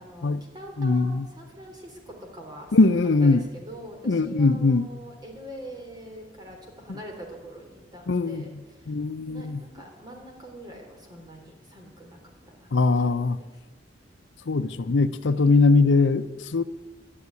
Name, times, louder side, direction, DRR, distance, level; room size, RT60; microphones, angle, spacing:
voice 1, 0.0-8.9 9.3-12.2 12.5-12.7 13.0-13.1 13.4-13.5, equal, 25° right, 3.4 m, -44 dB
voice 2, 0.8-1.3 2.7-3.4 4.0-4.9 6.9-7.0 8.1-8.6 8.9-9.6 12.7-13.4 14.5-16.6, left 3 dB, 75° left, 0.6 m, -21 dB
12.0 x 11.0 x 9.5 m
head